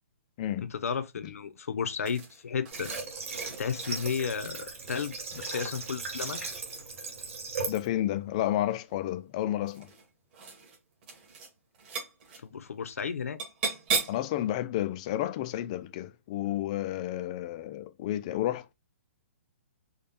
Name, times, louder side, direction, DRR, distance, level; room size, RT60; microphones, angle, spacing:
voice 1, 0.6-2.9 3.6-6.5 12.4-13.4, left 6 dB, 80° left, 0.8 m, -33 dB
sound 1, 2.1-7.1 8.3-8.9 9.6-10.1 10.3-10.8 11.0-11.5 11.7-12.4 13.4-14.3, right 5 dB, 35° right, 2.0 m, -37 dB
Water / Water tap faucet, 2.7-7.9, right 4 dB, 60° right, 2.1 m, -38 dB
voice 2, 7.7-9.9 14.1-18.7, left 13 dB, 25° left, 0.4 m, -31 dB
5.2 x 2.4 x 4.2 m
hypercardioid pair, 165°, 8 cm